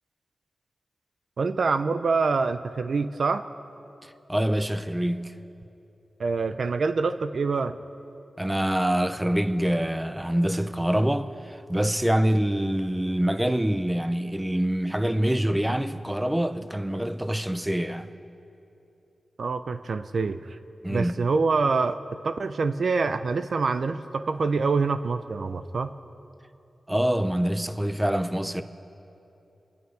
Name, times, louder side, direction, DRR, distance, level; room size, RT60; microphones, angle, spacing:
voice 1, 1.4-3.4 6.2-7.8 19.4-20.6 20.9-25.9, right 4 dB, 70° right, 0.5 m, -26 dB
voice 2, 4.0-5.3 8.4-18.1 20.8-21.2 26.9-28.6, right 1 dB, 10° right, 0.7 m, -25 dB
26.5 x 10.5 x 4.7 m
cardioid pair, 65°, 0 cm